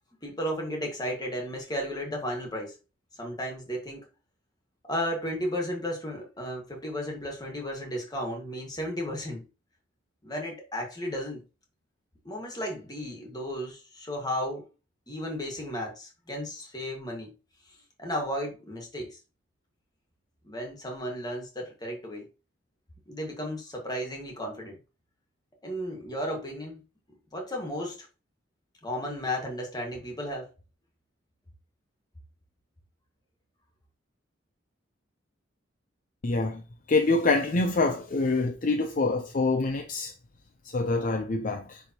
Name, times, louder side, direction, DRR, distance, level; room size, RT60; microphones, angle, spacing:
voice 1, 0.2-2.8 3.2-4.1 4.9-9.4 10.2-11.4 12.2-14.7 15.1-17.3 18.0-19.2 20.4-22.3 23.1-24.8 25.6-26.8 27.3-28.1 28.8-30.5, equal, 20° left, 1.7 m, -34 dB
voice 2, 36.2-36.6 36.9-40.1 40.6-41.8, left 3 dB, 45° left, 0.5 m, -26 dB
10.0 x 3.5 x 2.9 m
head